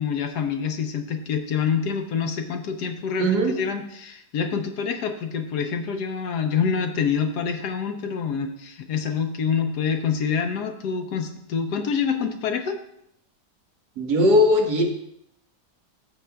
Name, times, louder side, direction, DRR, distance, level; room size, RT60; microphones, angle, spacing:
voice 1, 0.0-12.8, left 6 dB, 70° left, 6 dB, 1.3 m, -26 dB
voice 2, 3.2-3.6 14.0-14.8, left 1 dB, 70° right, 1 dB, 1.8 m, -19 dB
12.5 x 7.1 x 2.3 m, 0.73 s
omnidirectional pair, 1.8 m